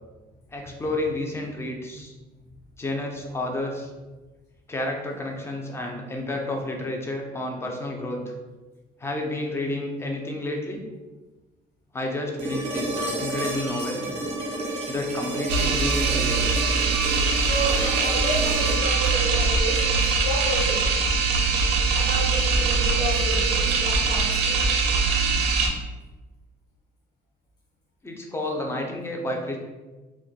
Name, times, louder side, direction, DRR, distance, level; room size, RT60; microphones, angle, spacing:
voice 1, 0.5-2.1 2.8-3.9 4.7-8.3 9.0-10.8 11.9-14.1 14.9-16.4 28.0-29.6, left 1 dB, 15° left, 1 dB, 0.4 m, -30 dB
sound 1, 12.4-20.4 22.6-22.7, right 1 dB, 35° right, 0.5 m, -31 dB
sound 2, 15.5-25.7, right 4 dB, 90° right, 0.4 m, -22 dB
voice 2, 17.4-20.8 21.9-24.6, equal, 75° left, -5 dB, 1.0 m, -30 dB
2.2 x 2.1 x 2.7 m, 1.2 s
cardioid pair, 110°, 17 cm